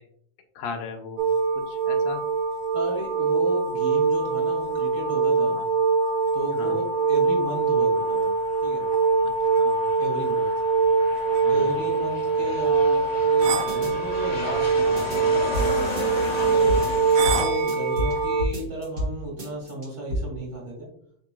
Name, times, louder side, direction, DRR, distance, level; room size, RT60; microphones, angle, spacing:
voice 1, 0.6-1.3 1.5-2.2 5.6-5.7 6.6-6.8 9.2-9.8 11.4-11.7 16.4-16.8, left 4 dB, 75° left, 4 dB, 1.8 m, -38 dB
sound 1, 1.2-18.5, right 4 dB, 75° right, 1.7 m, -23 dB
voice 2, 2.7-5.6 6.3-8.3 8.6-8.8 10.0-10.5 11.5-15.5 16.4-20.9, right 1 dB, 20° right, -4 dB, 1.3 m, -34 dB
Aircraft, 7.2-17.4, left 2 dB, 25° left, 0.7 m, -36 dB
sound 2, 13.7-13.9 15.0-15.2 15.5-18.1 18.4-19.1 19.4-20.2, equal, 55° right, 0.8 m, -30 dB
8.1 x 2.8 x 2.2 m, 0.68 s
omnidirectional pair, 3.3 m